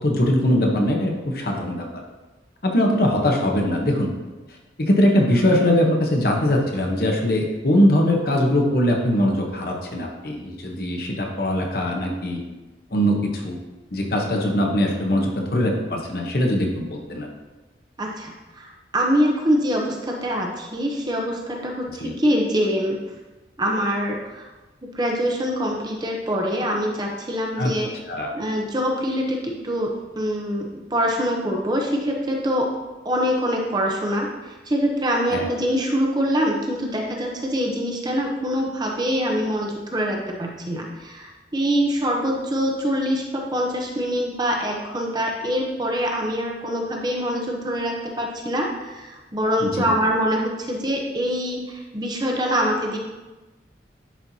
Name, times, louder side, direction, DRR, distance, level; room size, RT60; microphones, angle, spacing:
voice 1, 0.0-1.9 2.6-4.1 4.8-12.4 12.9-13.6 13.9-17.3 22.0-22.2 27.6-27.7 28.1-28.3 35.3-35.5 49.6-49.9, left 1 dB, 55° left, 1 dB, 1.0 m, -21 dB
voice 2, 18.0-23.0 23.6-24.5 24.8-27.9 28.3-32.7 33.0-53.0, equal, 25° right, 0 dB, 0.8 m, -24 dB
10.0 x 4.4 x 2.8 m, 1.2 s
head